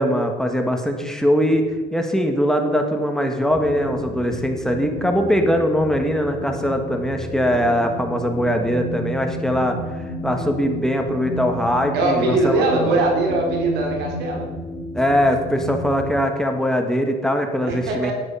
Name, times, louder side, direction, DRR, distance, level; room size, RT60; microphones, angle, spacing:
voice 1, 0.0-13.0 14.9-18.1, equal, 5° left, 3 dB, 1.6 m, -21 dB
sound 1, 3.5-16.2, equal, 20° left, 2.2 m, -32 dB
voice 2, 11.9-14.5 17.6-18.1, right 2 dB, 85° right, 1 dB, 3.7 m, -21 dB
11.0 x 10.0 x 5.7 m, 1.3 s
cardioid pair, 110°, 17 cm